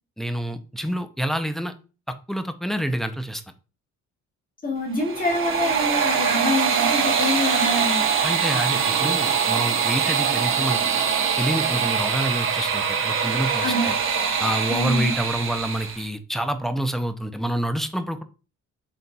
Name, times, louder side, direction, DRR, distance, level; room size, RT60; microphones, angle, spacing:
voice 1, 0.2-1.7 2.1-3.4 8.2-10.8 11.4-14.0 14.4-18.2, right 1 dB, ahead, 8 dB, 0.4 m, -27 dB
voice 2, 4.6-8.0 13.6-13.9 14.7-15.1, left 2 dB, 30° left, 0 dB, 1.5 m, -25 dB
sound 1, 4.9-16.1, right 6 dB, 45° right, 0.8 m, -23 dB
4.1 x 3.7 x 2.2 m, 0.34 s
cardioid pair, 90°, 30 cm